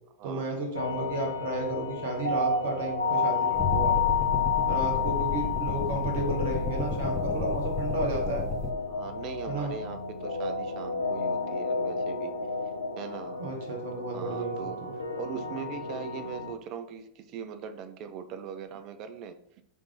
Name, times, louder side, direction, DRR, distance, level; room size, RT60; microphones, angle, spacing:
voice 1, 0.2-4.0 4.7-8.4 9.5-9.7 13.4-14.9, right 2 dB, 55° right, 1 dB, 1.1 m, -33 dB
sound 1, 0.7-16.5, left 5 dB, 80° left, 0.4 m, -31 dB
sound 2, 3.5-8.7, left 3 dB, 20° left, 0.8 m, -33 dB
Bowed string instrument, 3.6-10.1, left 2 dB, 50° left, 0.7 m, -40 dB
voice 2, 8.9-12.3 13.0-13.4 14.1-14.8 15.2-19.4, right 7 dB, 40° right, 9 dB, 0.4 m, -40 dB
3.4 x 3.2 x 3.6 m, 0.76 s
figure-of-eight pair, 90°, 0 cm